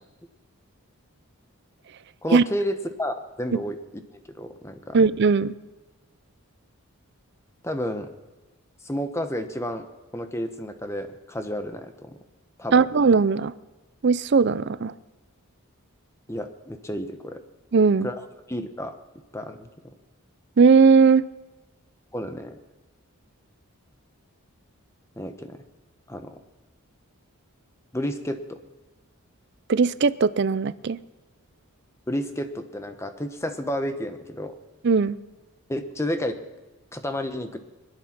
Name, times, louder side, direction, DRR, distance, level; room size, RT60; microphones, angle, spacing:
voice 1, 2.2-3.8 4.1-5.0 7.6-8.1 8.8-9.8 10.1-12.2 12.6-12.9 16.3-17.4 18.0-18.2 18.5-19.0 19.3-19.7 22.1-22.5 25.2-25.6 26.1-26.4 27.9-28.6 32.1-34.5 35.7-36.4 36.9-37.6, equal, 10° left, 8 dB, 1.0 m, -31 dB
voice 2, 4.9-5.5 12.7-13.5 14.0-14.9 17.7-18.1 20.6-21.2 29.7-31.0 34.8-35.2, right 5 dB, 50° right, 17 dB, 0.5 m, -18 dB
21.5 x 11.5 x 6.0 m, 1.2 s
head